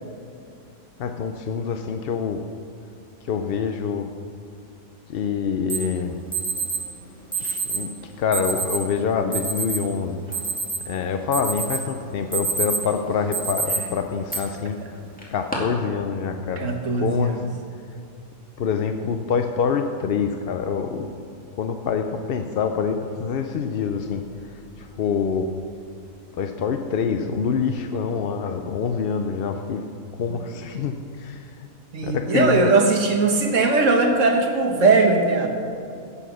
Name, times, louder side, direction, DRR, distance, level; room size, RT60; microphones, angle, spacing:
voice 1, 1.0-2.4 3.2-4.1 5.1-6.2 7.7-10.2 10.9-14.8 15.3-16.7 16.9-17.4 18.6-21.1 21.6-25.5 26.3-29.8 30.2-31.7 32.0-32.7, left 6 dB, 55° left, 6 dB, 0.7 m, -26 dB
Alarm, 5.7-5.8 6.3-6.8 7.3-7.8 8.3-8.8 9.3-9.8 10.2-10.9 11.3-11.8 12.2-12.9 13.3-13.8 14.3-14.4 15.2-15.5, right 4 dB, 5° left, 2.2 m, -26 dB
voice 2, 16.6-17.3 31.9-35.5, right 3 dB, 65° right, 3 dB, 1.6 m, -19 dB
16.0 x 7.1 x 6.1 m, 2.5 s
omnidirectional pair, 1.5 m